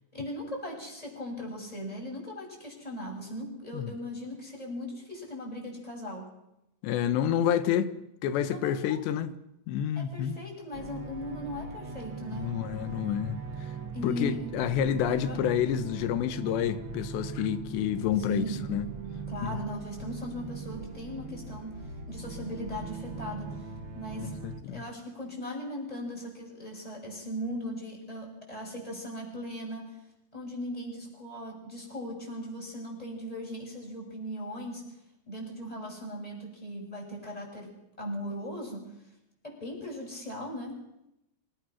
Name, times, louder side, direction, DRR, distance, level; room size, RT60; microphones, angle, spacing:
voice 1, 0.1-6.3 8.5-9.0 9.9-12.5 13.9-14.5 15.0-15.4 18.2-18.6 19.3-23.6 23.9-24.4 24.7-30.0 30.3-34.8 35.3-37.7 38.0-38.9 39.4-40.8, equal, 10° left, 6.8 m, -38 dB
voice 2, 6.8-7.9 8.2-9.3 9.7-10.4 12.3-13.4 14.0-18.9 19.5-19.6 24.4-24.8, left 9 dB, 80° left, 3.3 m, -29 dB
sound 1, 10.7-24.6, right 5 dB, 70° right, 1.1 m, -40 dB
26.5 x 19.5 x 6.4 m
omnidirectional pair, 5.0 m